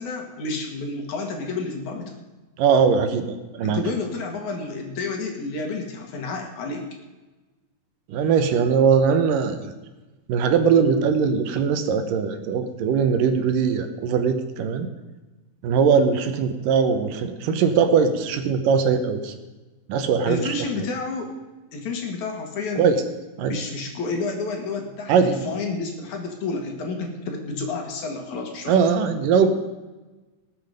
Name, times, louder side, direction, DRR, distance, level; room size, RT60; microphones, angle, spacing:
voice 1, 0.0-2.2 3.6-6.9 20.3-21.3 21.7-22.9 23.4-28.7, left 3 dB, 60° left, 2 dB, 3.1 m, -30 dB
voice 2, 2.6-3.8 8.1-9.7 10.3-14.9 15.6-19.3 19.9-20.9 22.8-23.0 23.4-23.5 25.1-25.4 28.7-29.5, right 6 dB, 75° right, 8 dB, 2.6 m, -20 dB
19.5 x 8.0 x 5.2 m, 1.2 s
omnidirectional pair, 4.0 m